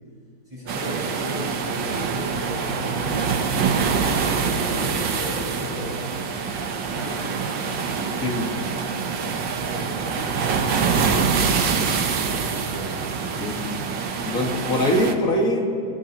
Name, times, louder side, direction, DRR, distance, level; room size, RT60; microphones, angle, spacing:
voice 1, 0.5-6.1 6.7-8.8 9.1-12.9, equal, 15° right, -7 dB, 5.5 m, -36 dB
sound 1, 0.7-15.1, right 5 dB, 80° right, 1.7 m, -25 dB
voice 2, 8.2-8.5 13.3-13.6 14.2-15.7, left 1 dB, 50° left, 0 dB, 2.3 m, -23 dB
29.5 x 15.5 x 3.0 m, 2.4 s
omnidirectional pair, 1.9 m